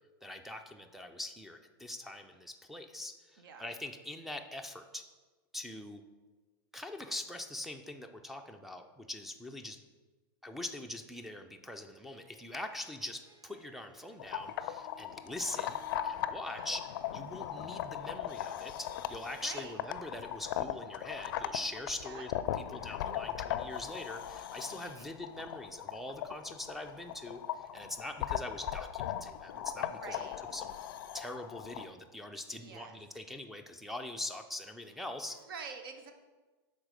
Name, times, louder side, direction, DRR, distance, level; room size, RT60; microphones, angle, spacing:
voice 1, 0.2-5.0 5.5-6.0 6.7-9.8 10.4-16.8 17.1-22.3 22.7-30.7 31.1-35.4, left 1 dB, ahead, 2 dB, 0.4 m, -43 dB
voice 2, 3.4-3.7 16.4-16.7 19.4-19.8 21.9-22.3 24.7-25.2 29.8-30.4 32.6-33.0 35.3-36.1, right 5 dB, 75° right, 6 dB, 0.7 m, -47 dB
Harp, 11.7-28.5, right 1 dB, 30° right, 1.0 m, -64 dB
sound 1, 14.2-31.8, left 11 dB, 65° left, 0.4 m, -39 dB
6.1 x 4.1 x 5.0 m, 1.3 s
hypercardioid pair, 125°, 12 cm